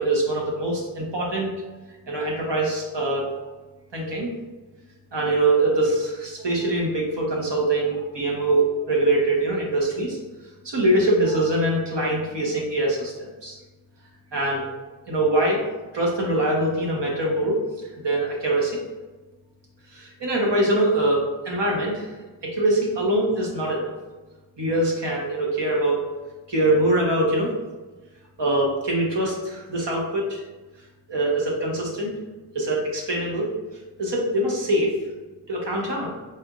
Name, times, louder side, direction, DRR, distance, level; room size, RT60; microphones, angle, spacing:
voice 1, 0.0-1.5 2.1-3.3 3.9-4.3 5.1-10.2 10.6-13.6 14.3-14.7 15.1-15.6 15.9-17.6 18.0-18.8 19.9-22.1 22.4-23.9 24.6-26.0 26.5-27.5 28.4-30.4 31.1-32.1 32.5-33.5 34.0-35.0 35.5-36.2, right 1 dB, 70° right, -2 dB, 1.2 m, -23 dB
4.4 x 3.3 x 2.5 m, 1.2 s
wide cardioid pair, 80°, 44 cm